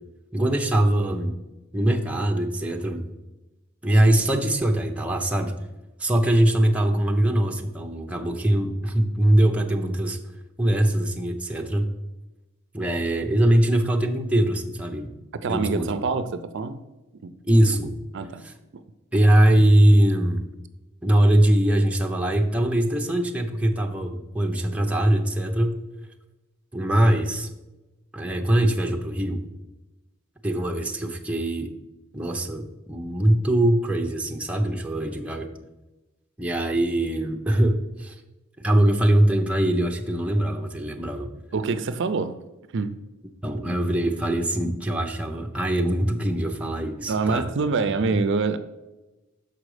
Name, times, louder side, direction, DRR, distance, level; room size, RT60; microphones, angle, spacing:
voice 1, 0.3-1.4 1.7-3.0 3.8-5.5 6.0-10.2 10.6-11.9 12.7-15.1 15.4-16.0 17.5-17.9 18.4-18.5 19.1-20.4 21.0-25.8 26.7-27.5 28.1-29.4 30.4-31.7 32.1-35.5 36.4-38.1 38.6-41.3 43.4-47.5 48.1-48.2, right 1 dB, 5° right, 2 dB, 0.7 m, -22 dB
voice 2, 15.4-16.8 17.2-17.3 18.1-18.4 18.7-18.8 41.5-42.4 42.7-43.0 47.1-48.6, right 4 dB, 60° right, 11 dB, 0.5 m, -25 dB
6.9 x 5.1 x 4.8 m, 1.1 s
head